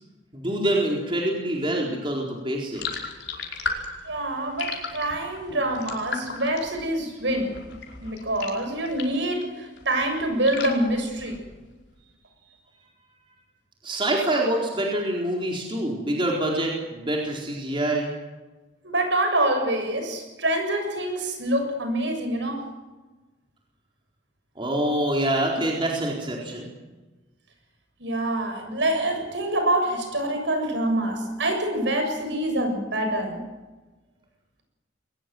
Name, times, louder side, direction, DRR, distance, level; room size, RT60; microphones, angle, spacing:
voice 1, 0.3-3.0 13.8-18.1 24.6-26.7, right 1 dB, 25° right, -1 dB, 4.2 m, -26 dB
sound 1, 2.7-9.3 9.7-11.7, left 4 dB, 65° left, 4.9 m, -36 dB
voice 2, 4.1-7.6 8.0-11.4 18.8-22.7 28.0-33.4, right 1 dB, 65° right, 5 dB, 7.2 m, -26 dB
22.5 x 20.5 x 7.9 m, 1.2 s
head